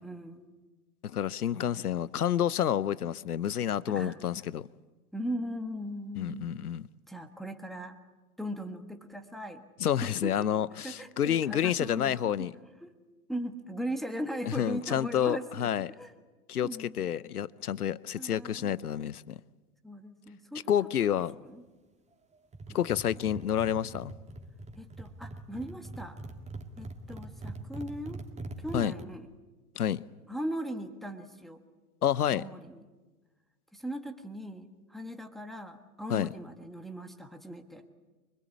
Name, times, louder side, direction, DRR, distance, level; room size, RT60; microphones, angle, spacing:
voice 1, 0.0-0.6 1.5-1.8 3.9-4.2 5.1-6.6 7.1-8.0 8.4-9.7 10.0-10.5 10.8-12.4 12.8-12.9 13.3-16.1 16.6-17.1 18.1-18.8 19.8-20.7 21.0-21.6 22.7-22.9 23.2-23.3 24.8-26.2 26.8-28.2 28.6-29.3 30.3-31.6 32.3-32.9 33.7-37.8, equal, ahead, 1.5 m, -39 dB
voice 2, 1.0-4.7 6.2-6.9 9.8-12.5 14.5-15.9 16.5-19.4 20.7-21.3 22.7-24.1 28.7-28.9 29.8-30.0 32.0-32.4 36.1-36.3, left 10 dB, 90° left, 0.8 m, -29 dB
sound 1, 22.5-29.0, right 2 dB, 15° right, 2.1 m, -43 dB
24.5 x 21.5 x 8.5 m
hypercardioid pair, 110°, 44 cm